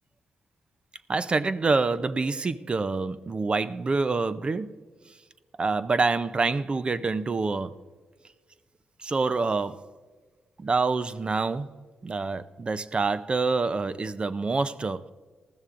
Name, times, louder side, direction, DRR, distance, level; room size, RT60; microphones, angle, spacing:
voice 1, 1.1-4.8 5.6-7.8 9.0-9.9 10.6-15.1, right 3 dB, 35° right, 0.5 m, -27 dB
19.5 x 14.5 x 2.5 m
cardioid pair, 85°, 3 cm